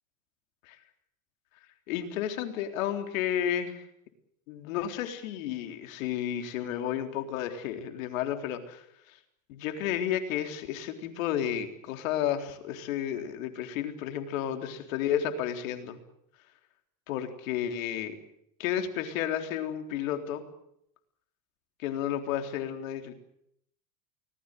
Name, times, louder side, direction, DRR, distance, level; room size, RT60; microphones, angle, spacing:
voice 1, 1.9-3.8 4.5-9.2 9.5-16.0 17.1-18.2 18.6-20.4 21.8-23.1, left 10 dB, 75° left, 6 dB, 3.8 m, -32 dB
24.5 x 20.5 x 7.8 m, 0.73 s
hypercardioid pair, 90°, 40 cm